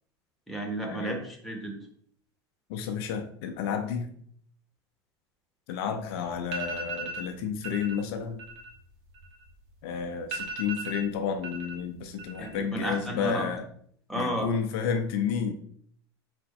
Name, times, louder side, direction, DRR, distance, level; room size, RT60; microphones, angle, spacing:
voice 1, 0.5-1.7 12.4-13.5 14.1-14.5, right 1 dB, ahead, 2 dB, 1.1 m, -32 dB
voice 2, 2.7-4.1 5.7-8.4 9.8-13.6 14.1-15.5, left 7 dB, 65° left, 5 dB, 0.6 m, -31 dB
sound 1, 6.0-6.1 6.4-7.3 7.6-8.0 8.3-9.7 10.0-10.1 10.3-11.7 12.0-12.6 12.9-13.5, right 3 dB, 55° right, 1.1 m, -37 dB
4.1 x 3.6 x 3.0 m, 0.62 s
hypercardioid pair, 85°, 14 cm